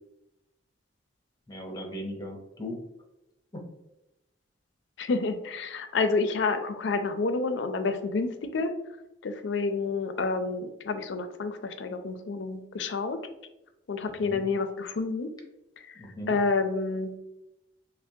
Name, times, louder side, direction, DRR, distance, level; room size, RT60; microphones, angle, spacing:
voice 1, 1.5-2.8 3.5-3.6 14.1-14.4 15.9-16.4, equal, 20° left, 1 dB, 0.7 m, -38 dB
voice 2, 5.0-8.7 9.2-13.2 13.9-15.3 16.3-17.1, left 4 dB, 70° left, 8 dB, 0.4 m, -29 dB
5.6 x 2.1 x 2.7 m, 0.94 s
head